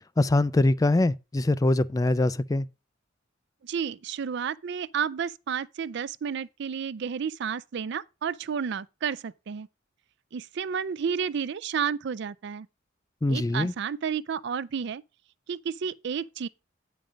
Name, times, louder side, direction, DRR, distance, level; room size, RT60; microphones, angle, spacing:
voice 1, 0.2-2.7 13.2-13.7, left 2 dB, 20° left, 0.3 m, -23 dB
voice 2, 3.6-9.7 10.3-12.7 13.3-15.0 15.5-16.5, right 7 dB, 60° right, 0.4 m, -31 dB
9.0 x 5.3 x 5.1 m
head